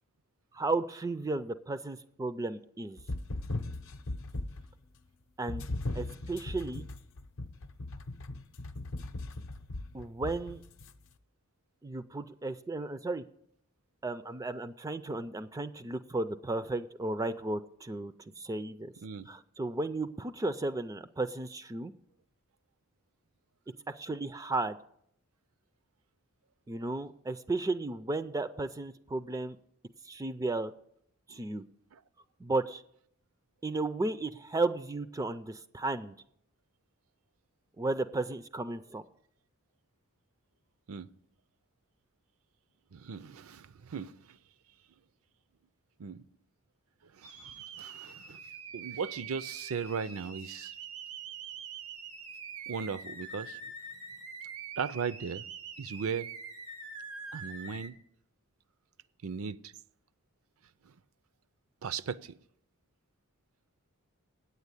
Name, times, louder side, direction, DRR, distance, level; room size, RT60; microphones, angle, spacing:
voice 1, 0.5-3.0 5.4-5.6 5.9-6.9 9.9-10.6 11.8-13.2 14.0-18.9 19.3-21.9 23.9-24.8 26.7-29.6 30.0-30.7 31.3-31.6 32.4-32.8 33.6-36.1 37.8-39.0, right 2 dB, 15° right, 0.3 m, -34 dB
sound 1, 3.0-4.7 5.5-10.9, left 2 dB, 65° left, 0.7 m, -38 dB
voice 2, 42.9-44.4 46.0-46.2 47.1-48.4 48.7-50.7 52.7-53.6 54.8-55.5 55.8-56.3 57.3-57.9 59.2-59.7 60.8-60.9 61.8-62.4, right 6 dB, 70° right, 0.5 m, -37 dB
sound 2, 47.2-57.9, right 5 dB, 90° right, 1.2 m, -44 dB
9.1 x 8.2 x 8.2 m
head